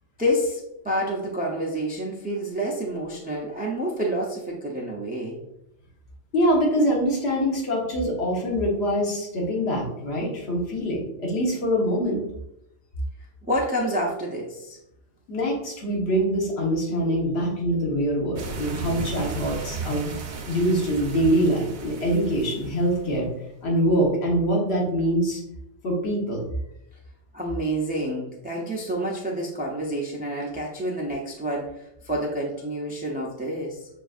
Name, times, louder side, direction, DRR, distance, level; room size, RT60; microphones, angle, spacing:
voice 1, 0.2-5.4 13.4-14.8 27.3-33.8, equal, 15° right, -3 dB, 0.3 m, -28 dB
voice 2, 6.3-12.2 15.3-20.1 20.5-23.3 23.6-25.4 25.8-26.5, equal, 60° left, -2 dB, 1.3 m, -24 dB
sound 1, 18.4-23.2, right 4 dB, 70° right, 1.0 m, -35 dB
6.4 x 2.6 x 2.4 m, 0.80 s
omnidirectional pair, 1.2 m